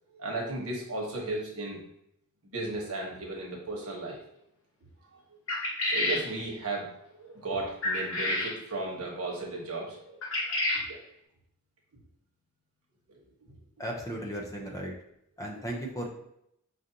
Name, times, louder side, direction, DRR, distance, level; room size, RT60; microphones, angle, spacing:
voice 1, 0.1-1.8 2.4-4.2 5.1-5.4 5.9-10.2 10.5-10.6 10.9-11.0, right 2 dB, 85° right, -1 dB, 1.1 m, -35 dB
sound 1, 5.5-6.3 7.8-8.5 10.2-10.9, left 1 dB, 65° left, 1.0 m, -29 dB
voice 2, 13.8-14.9 15.4-16.1, right 1 dB, 15° left, -1 dB, 0.6 m, -35 dB
4.8 x 2.6 x 2.7 m, 0.77 s
head